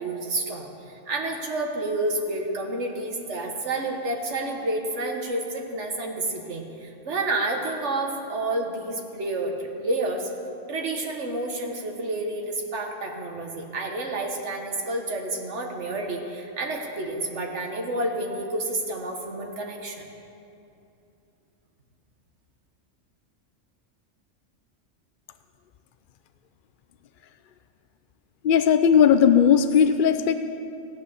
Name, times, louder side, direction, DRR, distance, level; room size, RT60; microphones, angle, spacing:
voice 1, 0.0-10.3 10.7-20.0, right 2 dB, 60° right, 2 dB, 1.8 m, -29 dB
voice 2, 28.4-30.3, left 7 dB, 65° left, 10 dB, 0.5 m, -17 dB
16.0 x 9.2 x 7.0 m, 2.7 s
omnidirectional pair, 1.4 m